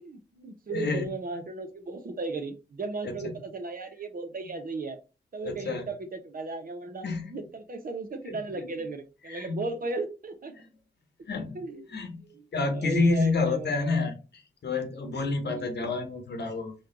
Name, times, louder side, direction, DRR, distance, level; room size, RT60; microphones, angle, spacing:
voice 1, 0.0-5.0 5.3-10.5 11.5-12.5 12.7-13.7 15.5-15.7, right 3 dB, 55° right, 7 dB, 0.9 m, -36 dB
voice 2, 0.7-1.1 3.0-3.3 5.4-5.8 7.0-7.4 8.2-8.7 9.3-9.6 10.5-10.7 11.3-11.6 11.9-12.2 12.5-16.7, left 3 dB, 70° left, 5 dB, 0.9 m, -29 dB
4.3 x 2.3 x 3.7 m, 0.31 s
cardioid pair, 50°, 18 cm